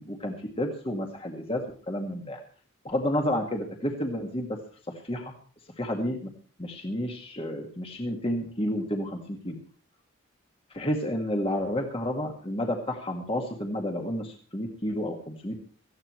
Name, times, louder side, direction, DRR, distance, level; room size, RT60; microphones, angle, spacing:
voice 1, 0.0-2.4 2.8-4.6 5.0-5.3 5.8-6.3 6.6-9.5 10.7-15.6, left 1 dB, 25° left, 2 dB, 2.0 m, -30 dB
18.0 x 14.5 x 3.2 m, 0.41 s
head